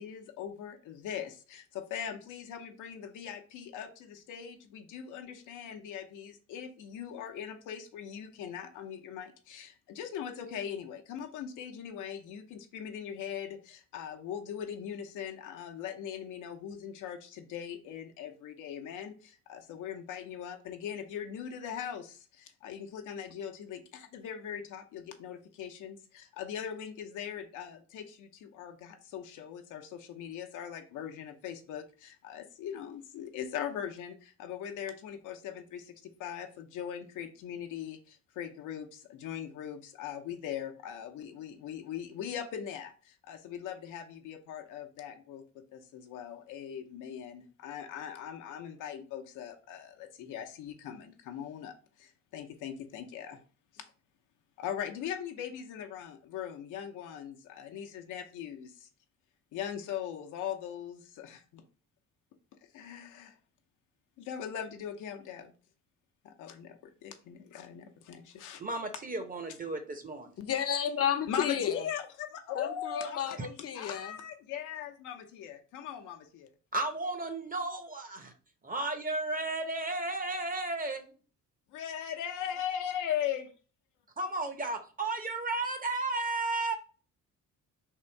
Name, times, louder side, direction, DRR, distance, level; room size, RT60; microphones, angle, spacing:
voice 1, 0.0-45.4 45.7-53.4 53.7-53.8 54.6-58.9 59.5-61.6 62.7-63.3 64.2-65.5 66.2-68.6 71.3-76.5 81.7-83.5, left 9 dB, 85° left, 0.7 m, -40 dB
voice 2, 68.6-70.3 73.4-73.5 76.7-78.3 78.6-81.2 84.2-86.8, right 2 dB, 30° right, 0.8 m, -34 dB
voice 3, 70.4-71.8 72.5-73.4 73.6-74.1, left 8 dB, 50° left, 0.6 m, -32 dB
3.7 x 2.5 x 4.4 m
cardioid pair, 90°, 30 cm